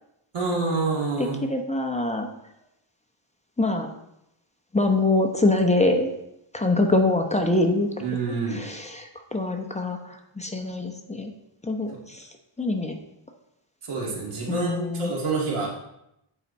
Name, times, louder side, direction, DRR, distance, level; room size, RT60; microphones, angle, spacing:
voice 1, 0.3-1.4 8.0-8.6 13.8-15.7, right 3 dB, 90° right, -2 dB, 2.2 m, -27 dB
voice 2, 1.2-2.3 3.6-3.9 4.7-6.1 6.5-7.9 8.5-11.3 11.6-12.3 12.6-13.0 14.5-15.1, left 2 dB, 15° left, 4 dB, 0.8 m, -24 dB
8.7 x 4.7 x 4.1 m, 0.84 s
wide cardioid pair, 110°, 49 cm